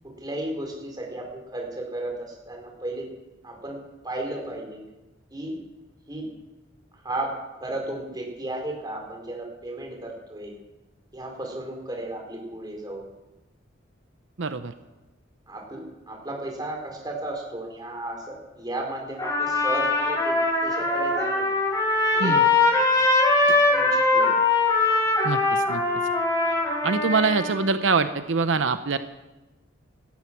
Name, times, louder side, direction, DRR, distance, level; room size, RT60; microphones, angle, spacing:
voice 1, 0.0-3.1 3.4-3.8 4.0-4.8 5.3-5.6 6.1-6.3 7.0-7.3 7.6-10.6 11.1-13.1 15.5-20.4 20.6-21.5 22.1-22.4 23.7-24.3, right 1 dB, 20° right, 0 dB, 4.6 m, -34 dB
voice 2, 14.4-14.7 22.2-22.4 25.2-25.8 26.8-29.0, right 4 dB, 85° right, 10 dB, 0.8 m, -24 dB
Trumpet, 19.2-27.7, left 3 dB, 20° left, 4.5 m, -22 dB
18.0 x 13.0 x 6.1 m, 1.1 s
head